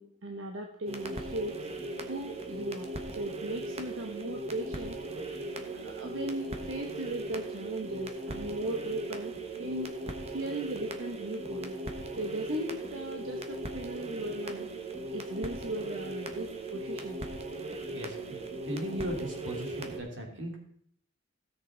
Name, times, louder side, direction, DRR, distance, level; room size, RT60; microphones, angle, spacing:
voice 1, 0.0-1.6 2.1-5.0 5.7-10.0 10.3-11.7 12.2-14.7 15.1-17.3, right 1 dB, 90° right, 2 dB, 1.1 m, -37 dB
sound 1, 0.9-20.0, right 2 dB, 30° right, 1.1 m, -38 dB
voice 2, 17.9-20.6, right 1 dB, 65° right, 0 dB, 2.9 m, -37 dB
16.5 x 6.6 x 3.9 m, 0.62 s
head